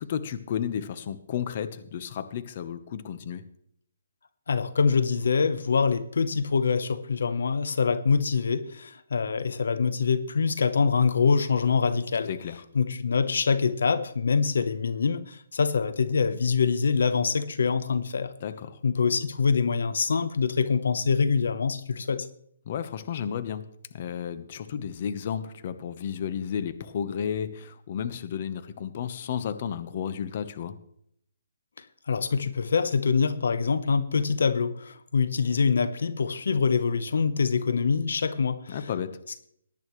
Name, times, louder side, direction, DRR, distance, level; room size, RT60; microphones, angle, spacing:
voice 1, 0.0-3.4 12.3-12.6 18.4-18.8 22.7-23.6 23.9-30.7 38.7-39.2, left 8 dB, 45° left, 12 dB, 1.0 m, -32 dB
voice 2, 4.5-12.3 12.7-18.3 18.8-22.3 31.8-38.8, left 5 dB, 75° left, 13 dB, 0.8 m, -25 dB
17.5 x 10.5 x 3.1 m, 0.69 s
hypercardioid pair, 160°, 0 cm